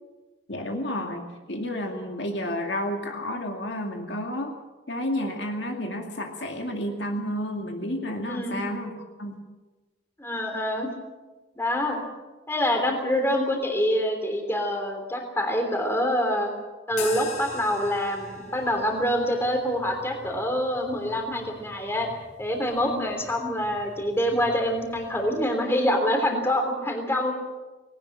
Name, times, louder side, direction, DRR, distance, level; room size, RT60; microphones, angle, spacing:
voice 1, 0.5-1.2 1.5-4.5 4.9-9.4 22.9-23.1 26.3-26.4, left 1 dB, 60° left, 2 dB, 2.4 m, -31 dB
voice 2, 8.3-8.6 10.2-10.9 11.6-12.0 12.5-16.5 16.9-22.1 22.4-27.3, equal, 10° left, 3 dB, 3.3 m, -26 dB
sound 1, 16.9-25.4, left 3 dB, 40° left, 5.1 m, -42 dB
19.5 x 18.0 x 7.4 m, 1.2 s
head